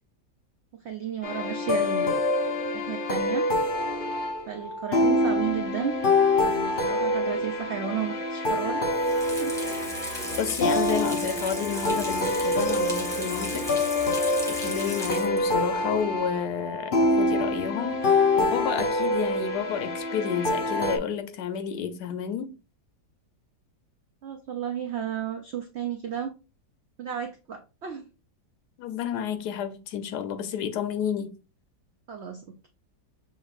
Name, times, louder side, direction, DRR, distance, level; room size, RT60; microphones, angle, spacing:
voice 1, 0.8-2.3 2.7-3.5 4.5-6.0 6.4-8.9 9.4-9.6 24.2-26.3 27.0-28.0 32.1-32.7, right 8 dB, 75° right, 0.6 m, -33 dB
sound 1, 1.2-21.0, left 2 dB, 50° left, 0.6 m, -26 dB
Water tap faucet / Sink (filling or washing), 8.9-15.6 16.0-16.1, equal, ahead, 0.9 m, -36 dB
voice 2, 10.4-13.7 14.5-22.5 28.8-31.4, left 8 dB, 75° left, 1.2 m, -30 dB
6.3 x 3.1 x 2.4 m
omnidirectional pair, 1.8 m